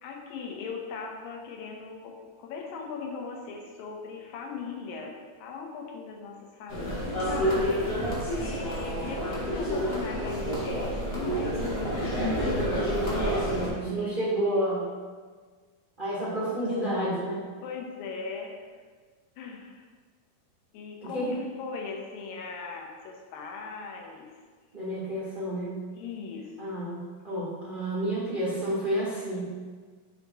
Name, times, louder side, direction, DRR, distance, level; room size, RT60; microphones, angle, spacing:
voice 1, 0.0-11.6 17.6-18.7 19.4-19.8 20.7-24.3 25.9-26.5, left 5 dB, 80° left, 0 dB, 2.6 m, -39 dB
sound 1, 6.7-13.7, equal, 45° left, 0.7 m, -29 dB
voice 2, 11.5-14.9 16.0-17.4 21.0-21.4 24.7-25.7 26.6-29.5, right 1 dB, 50° right, -8 dB, 0.6 m, -30 dB
7.0 x 4.0 x 4.7 m, 1.5 s
omnidirectional pair, 4.0 m